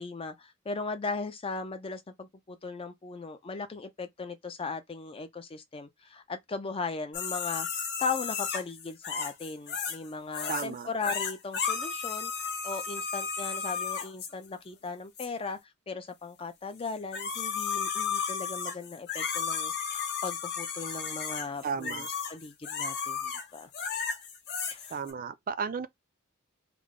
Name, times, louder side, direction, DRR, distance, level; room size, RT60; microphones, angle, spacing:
voice 1, 0.0-15.6 15.9-23.7 24.7-25.0, left 4 dB, 25° left, 0.5 m, -38 dB
sound 1, 7.1-10.1 10.3-10.7 11.0-14.3 15.2-15.3 16.8-25.1, left 6 dB, 50° left, 0.8 m, -34 dB
voice 2, 10.5-10.9 21.6-22.1 24.9-25.9, right 6 dB, 40° right, 0.4 m, -34 dB
3.6 x 2.1 x 3.6 m
head